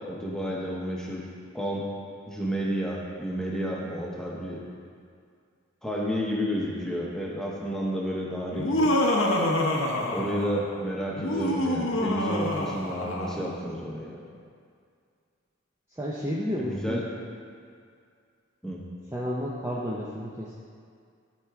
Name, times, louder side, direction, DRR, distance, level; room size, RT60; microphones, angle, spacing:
voice 1, 0.1-1.3 1.5-1.9 2.3-4.6 5.8-8.9 10.1-14.2 16.6-17.0 18.6-18.8, equal, 5° left, -4 dB, 0.9 m, -31 dB
Laughter, 8.5-10.7 11.1-13.5, left 1 dB, 75° left, 0.8 m, -26 dB
voice 2, 15.9-17.0 19.1-20.6, equal, 10° right, -6 dB, 0.5 m, -31 dB
11.5 x 4.5 x 3.6 m, 2.2 s
head